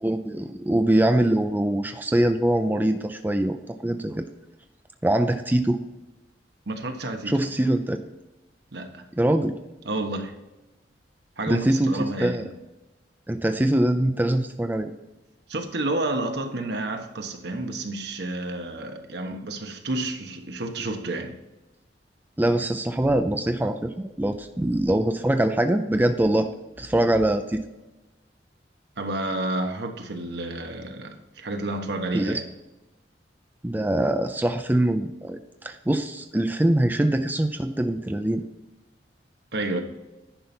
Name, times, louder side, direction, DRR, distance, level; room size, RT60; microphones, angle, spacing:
voice 1, 0.0-3.6 3.8-4.2 5.0-5.8 7.3-8.0 9.1-9.5 11.5-12.4 13.3-14.9 22.4-26.5 26.8-27.6 32.1-32.4 33.6-38.4, right 1 dB, 10° right, 0.5 m, -23 dB
voice 2, 6.7-7.4 8.7-9.1 9.8-10.3 11.4-12.5 15.5-21.3 29.0-32.4 39.5-39.8, right 2 dB, 70° right, 1.2 m, -30 dB
10.5 x 5.5 x 4.4 m
head